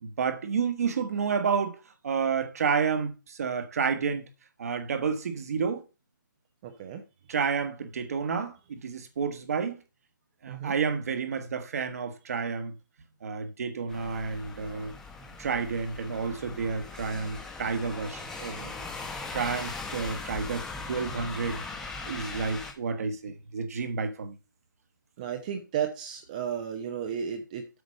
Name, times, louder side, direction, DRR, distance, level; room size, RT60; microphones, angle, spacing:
voice 1, 0.0-4.3 4.6-5.8 7.3-9.8 10.4-12.7 13.2-14.9 15.4-18.7 19.3-21.6 22.0-24.4, right 5 dB, 45° right, 1.5 m, -30 dB
voice 2, 6.6-7.0 10.5-10.7 25.2-27.7, right 8 dB, 25° right, 0.9 m, -33 dB
sound 1, 13.9-22.7, left 3 dB, 5° left, 0.9 m, -40 dB
8.3 x 5.0 x 6.4 m
hypercardioid pair, 165°, 11 cm